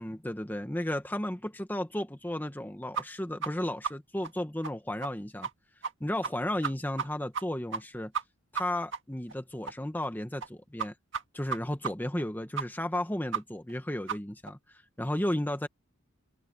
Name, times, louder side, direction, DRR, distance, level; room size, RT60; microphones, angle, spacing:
voice 1, 0.0-5.5 6.0-8.1 8.5-10.9 11.3-15.7, left 1 dB, 10° left, 1.2 m, -34 dB
sound 1, 2.9-3.0 3.4-3.5 3.8-3.9 4.2-4.3 4.6-4.7 5.0-5.1 5.4-5.5 5.8-5.9 6.2-6.3 6.6-7.1 7.3-7.4 7.7-7.8 8.1-8.2 8.5-8.6 8.9-9.0 9.3-9.4 9.7-9.8 10.0-10.1 10.4-10.5 10.8-10.9 11.1-11.2 11.5-11.6 11.8-11.9 12.2-12.3 12.6-12.7 12.9-13.0 13.3-13.4 13.7-13.8 14.1-14.2 14.5-14.6, right 6 dB, 65° right, 1.8 m, -33 dB
open air
head